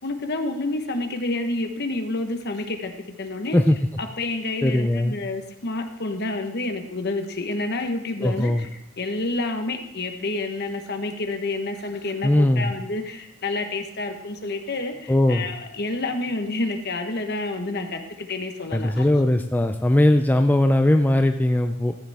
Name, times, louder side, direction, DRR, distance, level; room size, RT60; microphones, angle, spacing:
voice 1, 0.0-3.6 4.0-19.3, left 2 dB, 50° left, 6 dB, 1.1 m, -29 dB
voice 2, 4.6-5.2 8.2-8.7 12.2-12.7 15.1-15.5 18.7-22.0, left 1 dB, 10° left, 6 dB, 0.3 m, -19 dB
14.0 x 7.9 x 3.5 m, 0.83 s
head